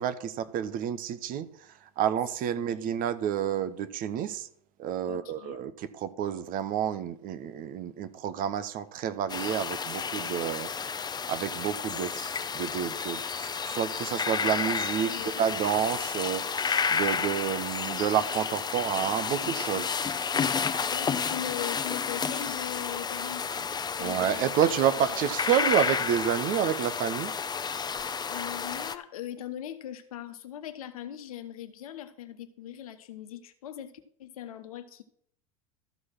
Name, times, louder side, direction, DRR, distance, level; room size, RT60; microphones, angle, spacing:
voice 1, 0.0-1.5 2.0-4.5 4.8-10.7 11.3-19.9 24.0-27.3, right 9 dB, 50° right, 13 dB, 1.0 m, -29 dB
voice 2, 2.6-3.0 5.1-5.6 15.1-15.4 20.8-23.7 24.0-24.6 28.3-35.0, left 11 dB, 80° left, 9 dB, 1.1 m, -40 dB
sound 1, 9.3-29.0, left 6 dB, 25° left, 0.8 m, -31 dB
13.5 x 4.8 x 5.9 m, 0.65 s
hypercardioid pair, 80°, 18 cm